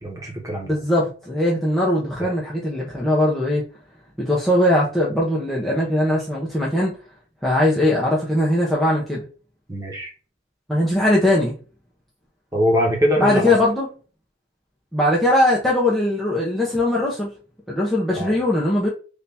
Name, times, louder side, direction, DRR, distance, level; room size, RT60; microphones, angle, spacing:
voice 1, 0.0-0.8 2.2-2.3 9.7-10.1 12.5-13.5 18.1-18.4, equal, 15° right, 1.3 m, -22 dB
voice 2, 0.7-3.6 4.2-7.0 7.4-9.2 10.7-11.5 13.2-13.9 14.9-17.3 17.7-18.9, left 1 dB, ahead, 0.8 m, -20 dB
3.4 x 2.8 x 4.1 m
head